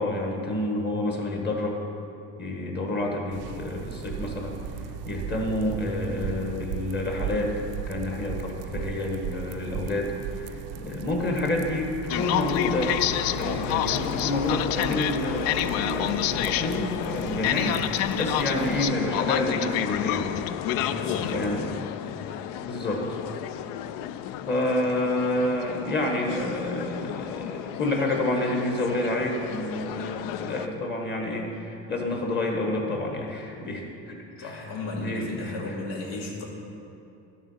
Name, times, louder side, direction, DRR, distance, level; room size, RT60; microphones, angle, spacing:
voice 1, 0.0-1.8 2.4-4.6 5.1-7.5 7.9-12.9 13.4-20.3 21.1-21.7 22.6-23.2 24.5-35.7, left 1 dB, 30° left, 0 dB, 1.6 m, -29 dB
sound 1, 3.3-18.9, right 8 dB, 50° right, 0.4 m, -37 dB
sound 2, 12.1-30.7, left 11 dB, 75° left, 0.5 m, -30 dB
voice 2, 20.7-21.7 34.4-36.5, left 2 dB, 90° left, -1 dB, 2.3 m, -35 dB
12.0 x 7.2 x 5.7 m, 2.7 s
cardioid pair, 130°, 34 cm